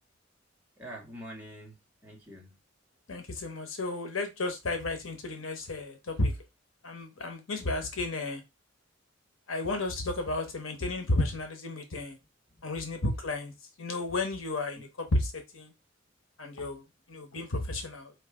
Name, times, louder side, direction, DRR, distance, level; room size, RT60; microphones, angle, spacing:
voice 1, 0.8-2.5 12.6-12.9 14.7-14.9, right 1 dB, 10° right, 1.5 m, -46 dB
voice 2, 3.1-6.4 6.8-8.4 9.5-12.2 12.6-13.5 13.8-15.7 16.4-18.1, left 2 dB, 80° left, 1.0 m, -32 dB
4.7 x 2.6 x 3.7 m
head